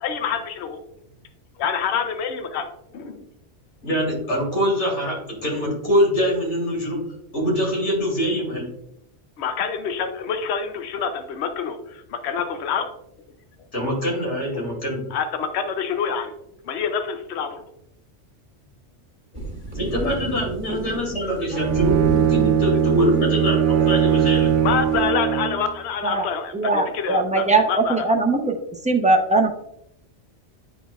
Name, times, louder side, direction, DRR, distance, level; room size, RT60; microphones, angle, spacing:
voice 1, 0.0-0.8 1.6-2.7 2.9-3.3 9.4-12.9 15.1-16.3 16.7-17.6 20.7-20.8 24.6-28.0, left 6 dB, 70° left, 8 dB, 0.9 m, -27 dB
voice 2, 3.8-7.0 7.3-8.7 13.7-15.0 19.7-24.5, equal, 85° left, -2 dB, 2.7 m, -24 dB
sound 1, 19.3-25.1, right 3 dB, 25° right, 1.8 m, -34 dB
Bowed string instrument, 21.5-25.7, right 8 dB, 80° right, 0.9 m, -20 dB
voice 3, 26.5-28.6 28.8-29.5, right 3 dB, 10° right, 2 dB, 0.4 m, -20 dB
9.8 x 4.3 x 2.3 m, 0.79 s
omnidirectional pair, 1.2 m